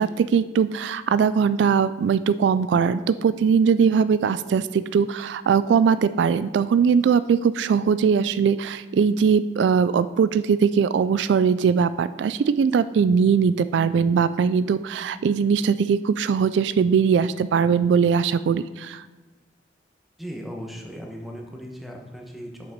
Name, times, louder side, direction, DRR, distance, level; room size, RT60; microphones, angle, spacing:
voice 1, 0.0-19.1, right 6 dB, 75° right, 15 dB, 0.3 m, -20 dB
voice 2, 20.2-22.7, equal, ahead, 1 dB, 1.1 m, -37 dB
7.2 x 5.9 x 5.2 m, 1.2 s
head